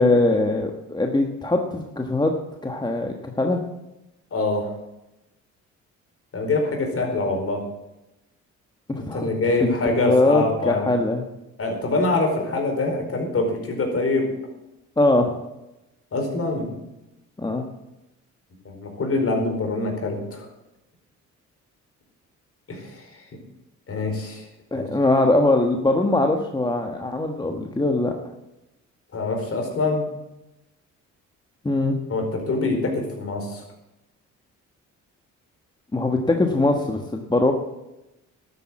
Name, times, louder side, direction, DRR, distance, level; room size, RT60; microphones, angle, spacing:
voice 1, 0.0-2.3 2.6-3.6 8.9-9.3 9.6-11.2 15.0-15.4 17.4-17.6 24.7-28.1 31.6-32.0 35.9-37.5, left 2 dB, 15° left, 3 dB, 1.4 m, -21 dB
voice 2, 4.3-4.7 6.3-7.6 9.0-10.9 11.6-14.3 16.1-16.7 18.6-20.5 22.7-23.2 23.9-24.5 24.7-24.9 29.1-30.1 32.1-33.6, left 2 dB, 50° left, 3 dB, 4.6 m, -25 dB
12.5 x 9.0 x 7.5 m, 0.95 s
cardioid pair, 90°, 30 cm